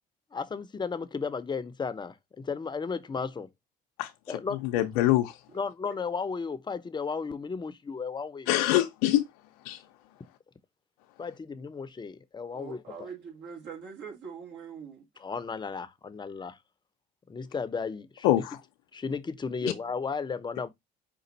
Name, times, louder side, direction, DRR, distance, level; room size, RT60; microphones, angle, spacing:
voice 1, 0.3-3.5 4.3-4.6 5.5-8.5 11.2-13.1 15.2-16.6 17.3-18.4 18.9-20.7, left 5 dB, 20° left, 0.7 m, -34 dB
voice 2, 4.7-5.2 8.5-9.3 9.6-9.8 18.2-18.6, left 14 dB, 80° left, 0.5 m, -23 dB
voice 3, 12.5-15.1, right 6 dB, 65° right, 1.8 m, -43 dB
5.1 x 2.5 x 4.0 m
supercardioid pair, 75°, 20 cm